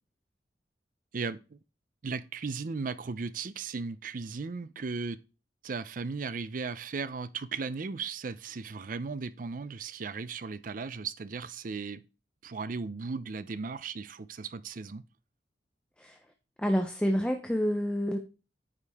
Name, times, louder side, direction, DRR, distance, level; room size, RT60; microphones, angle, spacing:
voice 1, 1.1-1.6 2.0-5.2 5.6-12.0 12.4-15.0, right 4 dB, 45° right, 0.5 m, -36 dB
voice 2, 16.6-18.2, equal, 5° left, 0.6 m, -28 dB
9.4 x 5.1 x 3.5 m
head